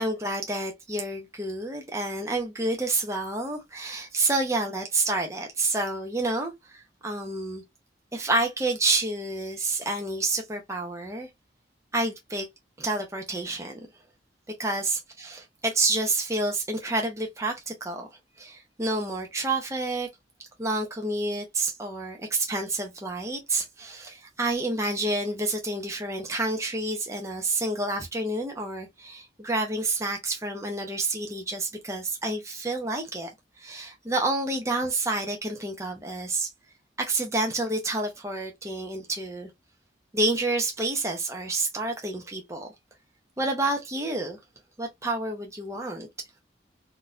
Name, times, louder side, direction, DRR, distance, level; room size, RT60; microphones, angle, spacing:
voice 1, 0.0-7.6 8.1-11.3 11.9-12.5 12.8-13.9 14.6-18.1 18.4-20.1 20.6-33.3 33.6-36.5 37.0-39.5 40.1-42.7 43.4-44.4 44.8-46.1, right 2 dB, 15° right, 0.6 m, -29 dB
3.7 x 2.6 x 2.3 m
head